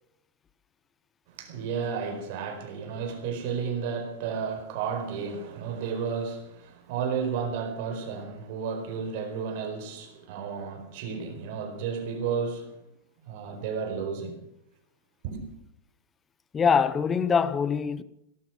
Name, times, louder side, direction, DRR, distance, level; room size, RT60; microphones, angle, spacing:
voice 1, 1.3-12.7 13.2-14.4 15.2-15.4, right 6 dB, 45° right, 4.5 m, -32 dB
voice 2, 16.5-18.0, left 6 dB, 15° left, 0.6 m, -23 dB
18.0 x 12.5 x 6.3 m
supercardioid pair, 175°, 0 cm